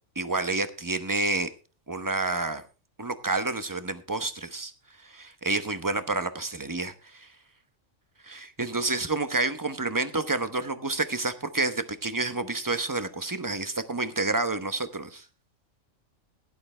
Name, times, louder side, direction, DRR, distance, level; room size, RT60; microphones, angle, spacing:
voice 1, 0.2-1.5 1.9-2.6 3.0-4.7 5.0-7.3 8.2-15.2, right 3 dB, 15° right, 10 dB, 0.9 m, -29 dB
16.5 x 11.5 x 3.3 m, 0.33 s
omnidirectional pair, 1.4 m